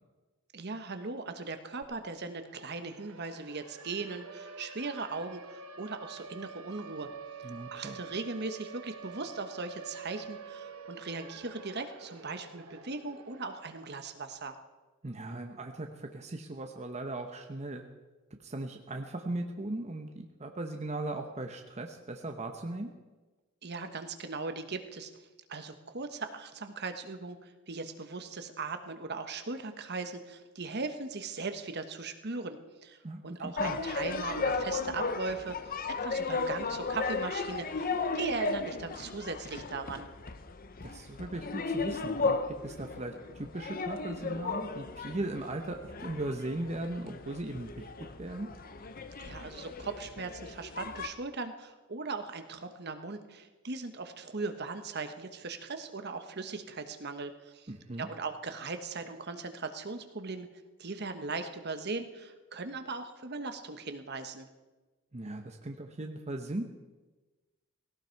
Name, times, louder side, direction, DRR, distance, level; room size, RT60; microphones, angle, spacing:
voice 1, 0.5-7.1 7.7-14.5 23.6-25.1 25.5-35.6 36.0-40.1 49.2-57.7 58.0-60.5 60.8-64.5, right 3 dB, 50° right, 8 dB, 1.2 m, -39 dB
Siren, 1.8-1.9 2.2-14.3, right 5 dB, 90° right, 1.2 m, -48 dB
voice 2, 7.4-8.0 15.0-17.8 18.4-22.9 33.0-33.8 40.8-42.4 42.6-47.9 48.2-48.5 57.7-58.1 65.1-66.6, right 2 dB, 30° right, 4 dB, 0.9 m, -38 dB
sound 1, 33.6-51.1, left 4 dB, 45° left, 0.8 m, -35 dB
17.5 x 17.0 x 4.6 m, 1.2 s
head